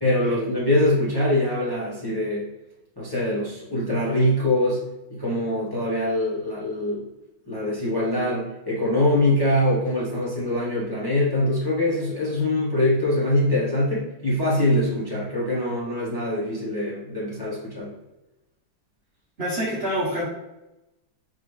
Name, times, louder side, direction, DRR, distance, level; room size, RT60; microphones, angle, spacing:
voice 1, 0.0-2.5 3.0-4.8 5.1-7.0 7.5-17.9, left 1 dB, 15° left, -7 dB, 1.0 m, -23 dB
voice 2, 19.4-20.2, equal, 50° right, -5 dB, 0.8 m, -26 dB
4.1 x 3.5 x 3.2 m, 0.96 s
omnidirectional pair, 2.2 m